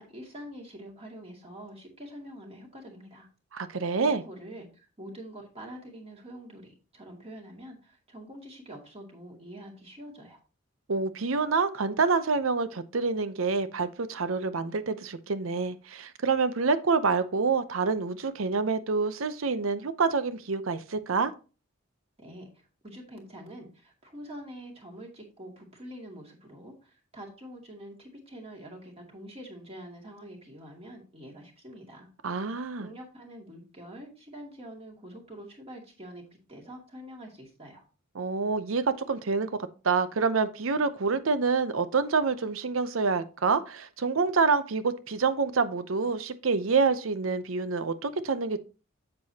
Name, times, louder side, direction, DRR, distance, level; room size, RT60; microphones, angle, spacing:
voice 1, 0.0-3.3 4.0-10.4 22.2-32.1 32.8-37.8, equal, 30° right, 2.3 m, -45 dB
voice 2, 3.5-4.2 10.9-21.3 32.2-32.9 38.2-39.5 39.8-48.6, right 4 dB, 85° right, 0.7 m, -27 dB
7.7 x 7.7 x 2.8 m
head